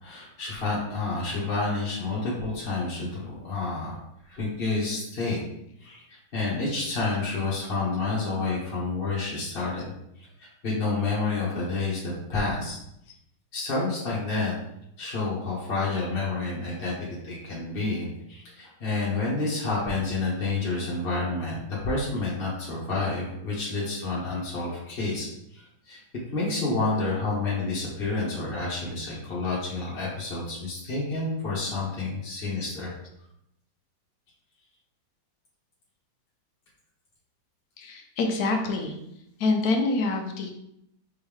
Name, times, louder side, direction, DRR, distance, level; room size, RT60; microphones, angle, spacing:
voice 1, 0.0-4.0 4.3-5.4 5.8-9.9 10.2-12.8 13.5-14.5 15.0-16.9 17.2-26.0 26.3-32.9, left 3 dB, 35° left, -7 dB, 1.3 m, -29 dB
voice 2, 37.8-39.0 39.4-40.5, left 3 dB, 65° left, 3 dB, 1.1 m, -26 dB
4.3 x 3.4 x 3.5 m, 0.78 s
omnidirectional pair, 2.0 m